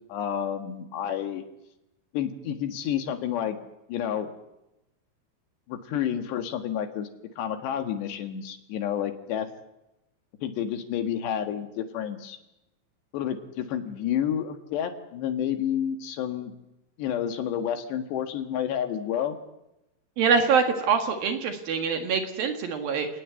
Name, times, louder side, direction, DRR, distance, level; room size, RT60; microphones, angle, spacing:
voice 1, 0.1-1.5 2.1-3.6 3.9-4.3 5.7-7.1 7.4-9.5 10.4-12.4 13.1-16.5 17.0-19.4, left 9 dB, 70° left, 8 dB, 3.6 m, -30 dB
voice 2, 20.2-23.1, right 5 dB, 60° right, 6 dB, 3.1 m, -24 dB
28.5 x 19.0 x 8.2 m, 0.92 s
omnidirectional pair, 5.4 m